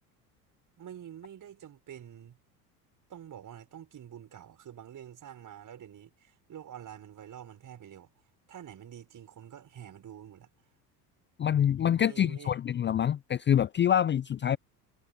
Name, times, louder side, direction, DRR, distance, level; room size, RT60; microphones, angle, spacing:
voice 1, 0.8-2.4 3.1-8.1 8.5-10.5 11.9-12.5, right 10 dB, 40° right, 6.6 m, -47 dB
voice 2, 11.4-14.6, left 9 dB, 25° left, 0.6 m, -26 dB
hypercardioid pair, 75°, 48 cm